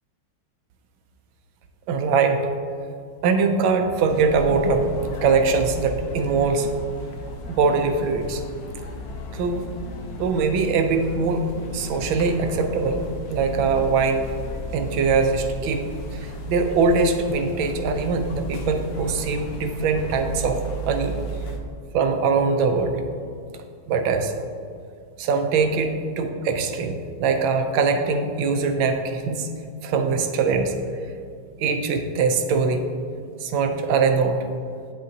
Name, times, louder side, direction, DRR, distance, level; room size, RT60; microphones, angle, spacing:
voice 1, 1.9-2.5 3.2-4.9 5.2-6.7 7.5-8.4 9.3-9.6 10.1-11.4 11.7-13.0 13.3-14.3 14.7-20.6 20.9-21.2 21.9-23.0 23.9-24.3 25.2-29.5 29.8-30.7 31.6-32.8 33.4-34.4, right 4 dB, 75° right, 5 dB, 1.3 m, -22 dB
sound 1, 4.1-21.6, right 1 dB, 70° left, 1.4 m, -34 dB
8.8 x 6.4 x 2.7 m, 2.3 s
omnidirectional pair, 2.2 m